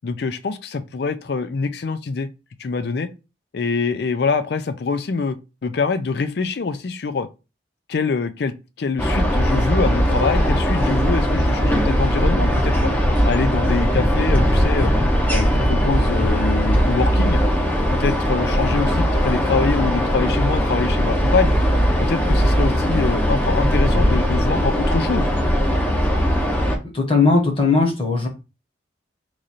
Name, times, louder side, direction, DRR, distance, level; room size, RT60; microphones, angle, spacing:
voice 1, 0.0-2.3 2.6-3.1 3.5-5.4 5.6-7.3 7.9-12.9 13.3-14.9 15.3-17.4 18.0-21.5 22.0-25.3, left 4 dB, 60° left, 0.4 m, -24 dB
sound 1, 9.0-26.8, equal, 10° left, 0.6 m, -19 dB
voice 2, 26.9-28.3, left 3 dB, 30° left, 1.0 m, -18 dB
3.1 x 2.5 x 4.0 m
head